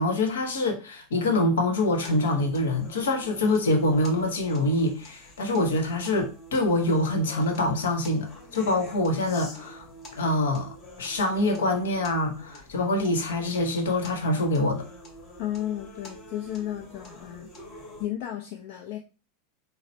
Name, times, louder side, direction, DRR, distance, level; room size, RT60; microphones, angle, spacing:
voice 1, 0.0-9.9 10.2-14.9, left 1 dB, 80° left, 0.9 m, -25 dB
sound 1, 2.0-18.1, equal, 35° left, 1.8 m, -47 dB
voice 2, 15.4-19.0, left 12 dB, 60° left, 0.5 m, -34 dB
3.9 x 2.0 x 4.4 m
hypercardioid pair, 90°, 0 cm